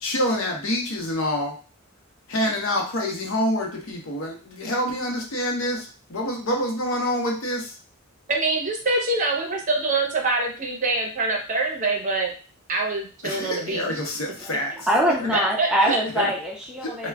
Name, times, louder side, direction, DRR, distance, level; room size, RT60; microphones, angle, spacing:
voice 1, 0.0-1.5 2.3-7.7 13.2-14.7 16.2-16.3 16.8-17.1, left 1 dB, 65° left, 0 dB, 0.7 m, -27 dB
voice 2, 8.3-12.3 12.7-13.8 15.6-15.7, right 2 dB, 35° right, -1 dB, 0.7 m, -24 dB
voice 3, 14.4-17.1, equal, 5° right, -2 dB, 0.5 m, -24 dB
2.3 x 2.1 x 3.4 m, 0.37 s
head